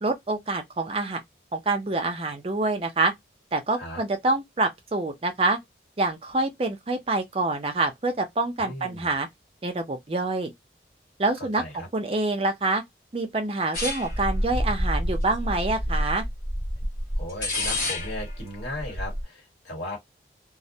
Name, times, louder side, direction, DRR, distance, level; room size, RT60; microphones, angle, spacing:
voice 1, 0.0-1.2 1.5-3.1 3.5-5.6 6.0-9.3 9.6-10.5 11.2-11.6 11.9-12.8 13.1-16.2, right 2 dB, 30° right, 0.5 m, -26 dB
voice 2, 8.6-9.1 11.4-11.9 17.2-20.0, left 1 dB, 80° left, 1.4 m, -36 dB
sound 1, 13.7-19.2, left 1 dB, 50° left, 0.9 m, -28 dB
2.2 x 2.1 x 2.6 m
head